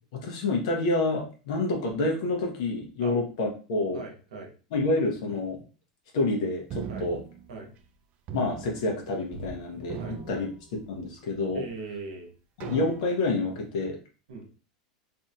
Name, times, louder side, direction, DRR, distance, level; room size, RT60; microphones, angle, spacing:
voice 1, 0.1-4.0 4.7-5.6 6.1-7.2 8.3-11.6 12.6-14.0, left 2 dB, 70° left, 2 dB, 0.9 m, -28 dB
voice 2, 3.9-4.5 6.9-7.1 7.5-7.7 10.0-10.5 11.5-12.3 14.3-14.5, right 3 dB, 80° right, 2 dB, 0.8 m, -40 dB
sound 1, 6.7-7.9 8.3-9.6 9.8-11.2 11.7-11.8 12.6-13.4, right 6 dB, 45° right, 0.3 m, -40 dB
2.7 x 2.6 x 2.3 m, 0.36 s
hypercardioid pair, 105°, 4 cm